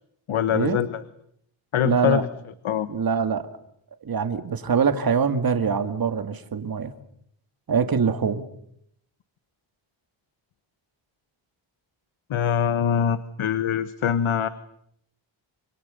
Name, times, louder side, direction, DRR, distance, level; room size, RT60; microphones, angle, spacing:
voice 1, 0.3-1.0 1.7-2.3 2.6-2.9 12.3-14.5, left 9 dB, 75° left, 13 dB, 1.3 m, -23 dB
voice 2, 1.8-2.2 2.9-3.5 4.0-6.9 7.7-8.4, right 6 dB, 45° right, 9 dB, 2.0 m, -24 dB
28.0 x 26.5 x 6.9 m, 0.72 s
wide cardioid pair, 175°, 49 cm